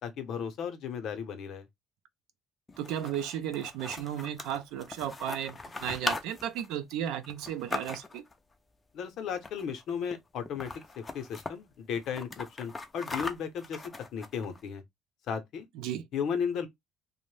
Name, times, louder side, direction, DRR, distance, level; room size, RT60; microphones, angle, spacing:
voice 1, 0.0-1.7 8.9-10.7 11.0-13.8 14.1-14.8 15.3-15.6 16.1-16.7, left 7 dB, 55° left, 0.7 m, -35 dB
sound 1, 2.7-8.3 9.4-9.8 10.1-10.2 10.5-11.5 12.0-14.6, left 3 dB, 15° left, 0.4 m, -39 dB
voice 2, 2.8-8.2 15.7-16.1, right 10 dB, 75° right, 0.4 m, -34 dB
2.6 x 2.1 x 3.1 m
cardioid pair, 140°, 0 cm